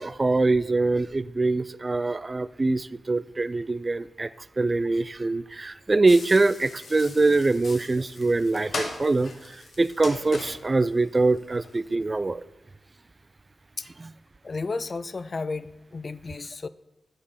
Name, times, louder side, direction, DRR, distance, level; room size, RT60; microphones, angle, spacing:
voice 1, 0.0-4.3 4.6-12.4 14.0-14.1, right 3 dB, 35° right, 0.3 m, -24 dB
sound 1, 6.1-11.8, left 3 dB, 65° left, 1.3 m, -39 dB
voice 2, 14.4-16.7, left 3 dB, 50° left, 0.4 m, -33 dB
8.2 x 5.3 x 6.5 m
cardioid pair, 60°, 0 cm